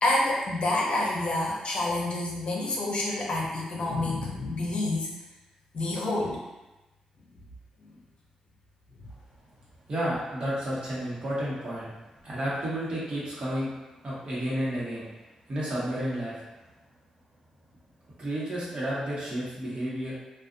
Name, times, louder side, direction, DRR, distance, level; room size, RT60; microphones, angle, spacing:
voice 1, 0.0-5.1 5.7-6.4, left 2 dB, 55° left, -3 dB, 0.6 m, -28 dB
voice 2, 9.9-11.9 12.2-13.7 14.0-15.1 15.5-16.4 18.2-20.1, equal, 50° right, -8 dB, 1.1 m, -31 dB
2.5 x 2.3 x 2.5 m, 1.1 s
cardioid pair, 70°, 2 cm